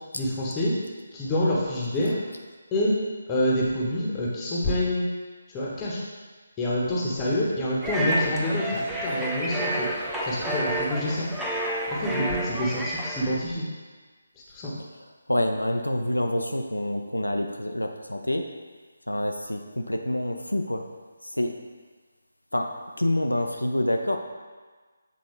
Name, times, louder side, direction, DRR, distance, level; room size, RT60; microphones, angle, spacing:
voice 1, 0.1-0.7 1.1-2.2 2.7-3.0 3.3-5.0 5.5-6.0 6.6-9.9 10.2-11.3 11.9-13.6 14.5-14.8, left 1 dB, 15° left, -5 dB, 1.0 m, -27 dB
sound 1, 7.8-13.4, right 1 dB, 5° right, 0.5 m, -29 dB
voice 2, 15.3-18.5 19.1-20.8 21.2-21.6 22.5-24.2, left 1 dB, 80° left, 4 dB, 0.5 m, -27 dB
7.6 x 3.9 x 3.2 m, 1.4 s
figure-of-eight pair, 150°, 0 cm